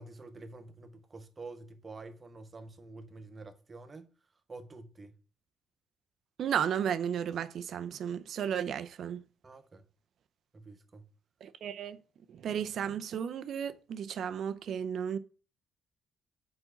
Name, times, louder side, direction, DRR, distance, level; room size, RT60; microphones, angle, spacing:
voice 1, 0.0-4.1 4.5-5.2 9.4-9.9 10.5-11.1, right 3 dB, 30° right, 0.9 m, -48 dB
voice 2, 6.4-9.2 11.4-12.0 12.3-15.2, right 8 dB, 65° right, 0.5 m, -34 dB
4.6 x 4.3 x 5.5 m
cardioid pair, 90°, 0 cm